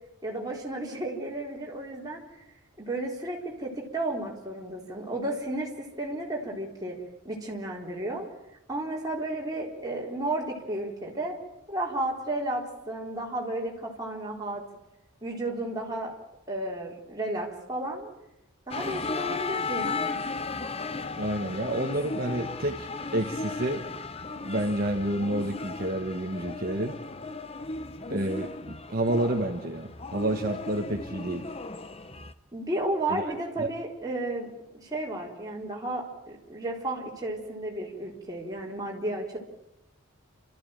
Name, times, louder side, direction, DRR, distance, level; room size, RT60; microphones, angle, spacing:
voice 1, 0.2-2.4 2.8-7.0 7.2-8.3 8.7-11.4 11.7-14.6 15.2-16.1 16.5-18.1 18.7-20.2 32.5-39.4, right 1 dB, 15° right, -2 dB, 3.9 m, -33 dB
sound 1, 18.7-32.3, left 4 dB, 30° left, 0.8 m, -36 dB
voice 2, 21.2-23.9 24.4-27.0 28.1-31.5 33.1-33.2 33.6-33.7, right 1 dB, 45° right, 3 dB, 1.4 m, -29 dB
29.5 x 14.0 x 9.0 m, 0.92 s
head